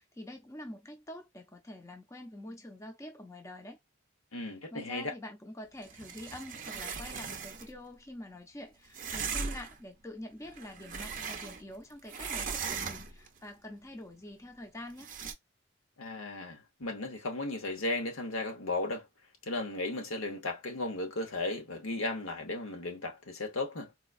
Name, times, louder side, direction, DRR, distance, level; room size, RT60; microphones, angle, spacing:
voice 1, 0.0-3.8 4.3-15.1, left 1 dB, 15° left, 0.5 m, -46 dB
voice 2, 4.3-5.1 16.0-19.0 19.5-23.9, left 2 dB, 85° left, 1.0 m, -35 dB
sound 1, 5.8-7.7 8.9-9.8 10.4-11.8 12.1-13.3 15.0-15.3, right 5 dB, 40° right, 0.5 m, -38 dB
4.0 x 2.3 x 2.4 m
head